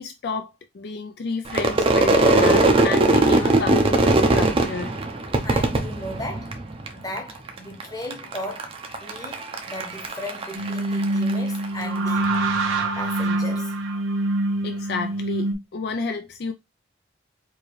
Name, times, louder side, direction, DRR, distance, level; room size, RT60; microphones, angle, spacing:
voice 1, 0.0-4.9 14.6-16.5, left 4 dB, 55° left, 0.4 m, -31 dB
Crowd / Fireworks, 1.5-6.9 7.2-7.8 8.1-11.7, right 2 dB, 30° right, 0.6 m, -20 dB
voice 2, 5.4-6.5 6.9-8.7 9.0-12.4 13.0-13.7, left 1 dB, 20° left, 0.9 m, -36 dB
sound 1, 10.5-15.5, right 2 dB, 90° right, 1.0 m, -25 dB
4.6 x 2.7 x 3.1 m
head